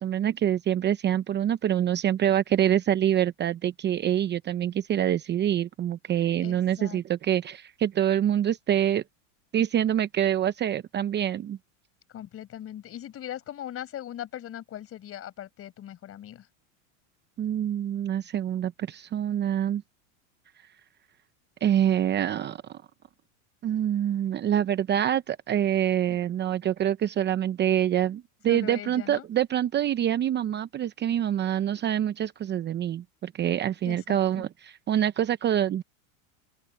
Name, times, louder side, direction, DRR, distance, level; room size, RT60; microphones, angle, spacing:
voice 1, 0.0-9.0 9.5-11.6 17.4-19.8 21.6-22.8 23.6-35.8, right 10 dB, 25° right, 0.8 m, -26 dB
voice 2, 6.4-7.0 12.1-16.5 26.1-26.2 28.5-29.2 33.8-34.5, left 11 dB, 35° left, 5.5 m, -40 dB
open air
supercardioid pair, 125°, 41 cm